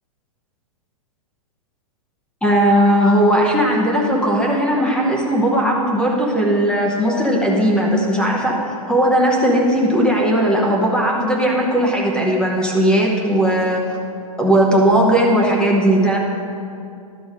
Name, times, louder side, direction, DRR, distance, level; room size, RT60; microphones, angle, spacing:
voice 1, 2.4-13.8 14.4-16.2, right 1 dB, 5° left, -1 dB, 0.9 m, -17 dB
11.5 x 5.9 x 5.0 m, 2.4 s
hypercardioid pair, 140°, 19 cm